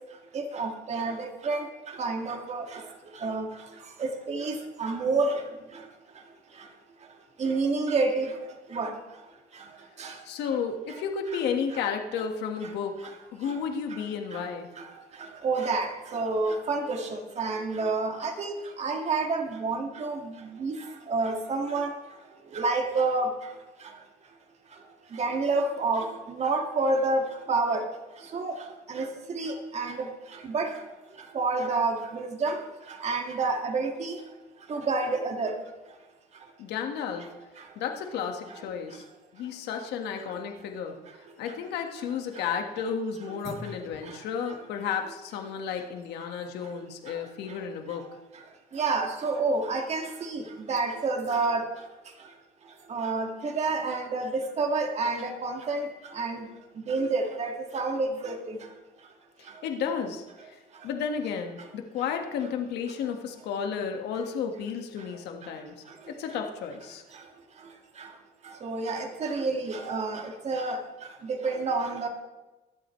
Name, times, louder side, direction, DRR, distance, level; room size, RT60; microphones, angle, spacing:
voice 1, 0.3-1.7 2.0-2.7 3.2-3.5 4.0-4.5 4.8-5.4 7.4-8.3 8.7-8.9 10.0-10.1 15.4-20.2 20.6-20.8 21.1-21.9 22.5-23.3 25.2-26.1 26.4-27.8 28.3-28.5 28.9-30.0 30.5-30.7 31.3-32.6 33.0-34.2 34.7-35.5 48.7-50.4 50.7-51.6 52.9-55.9 56.1-56.4 56.9-58.4 68.6-70.8 71.2-72.1, right 3 dB, 40° right, 3 dB, 2.0 m, -28 dB
voice 2, 10.2-12.9 13.3-14.7 36.6-37.3 37.7-39.0 39.3-41.0 41.4-48.1 56.4-56.5 59.4-65.7 66.1-67.0, left 6 dB, 80° left, 4 dB, 1.7 m, -32 dB
23.5 x 8.0 x 3.2 m, 1.1 s
cardioid pair, 110°, 17 cm